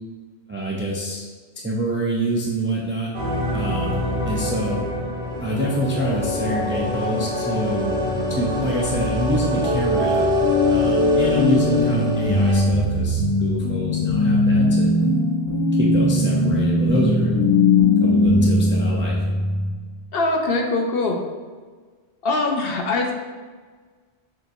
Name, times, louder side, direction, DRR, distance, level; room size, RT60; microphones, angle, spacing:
voice 1, 0.5-1.2 1.6-3.1 3.5-4.8 5.4-7.9 8.3-10.3 10.7-14.9 15.8-17.3 18.0-19.2, right 1 dB, 15° right, -4 dB, 0.4 m, -26 dB
sound 1, 3.1-12.6, equal, 80° right, 1.5 m, -26 dB
sound 2, 9.6-19.7, left 2 dB, 40° left, 1.5 m, -19 dB
voice 2, 20.1-21.2 22.2-23.1, left 2 dB, 65° left, 2 dB, 0.8 m, -22 dB
6.4 x 2.9 x 2.6 m, 1.5 s
omnidirectional pair, 1.1 m